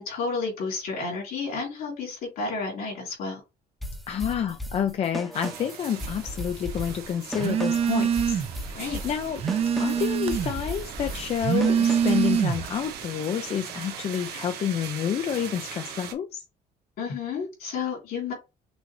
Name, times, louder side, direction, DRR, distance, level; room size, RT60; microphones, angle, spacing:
voice 1, 0.0-3.4 8.7-9.0 17.0-18.3, left 4 dB, 70° left, 3.0 m, -31 dB
sound 1, 3.8-12.3, equal, ahead, 0.8 m, -37 dB
voice 2, 4.1-9.4 9.8-16.5, left 9 dB, 40° left, 0.4 m, -29 dB
sound 2, 5.3-16.1, right 8 dB, 75° right, 1.2 m, -40 dB
Telephone, 7.4-8.6 9.0-10.7 11.3-12.8, right 8 dB, 35° right, 0.6 m, -24 dB
6.1 x 2.6 x 3.2 m
cardioid pair, 150°, 17 cm